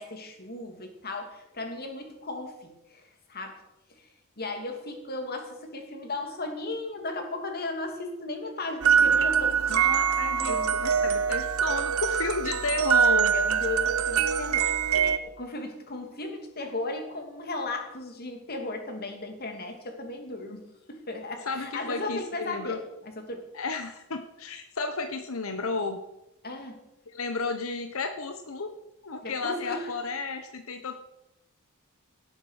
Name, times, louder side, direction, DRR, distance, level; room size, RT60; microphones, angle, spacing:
voice 1, 0.0-3.6 3.9-4.1 4.4-9.7 10.4-10.7 13.3-14.7 15.0-20.6 20.9-23.4 26.4-26.8 29.2-29.9, left 2 dB, 50° left, 4 dB, 2.6 m, -36 dB
sound 1, 8.8-15.2, right 7 dB, 85° right, 0.8 m, -24 dB
voice 2, 9.7-13.4 21.5-22.8 23.5-26.0 27.1-28.7 29.0-30.9, left 3 dB, 85° left, 7 dB, 1.1 m, -32 dB
17.0 x 7.9 x 6.5 m, 0.89 s
head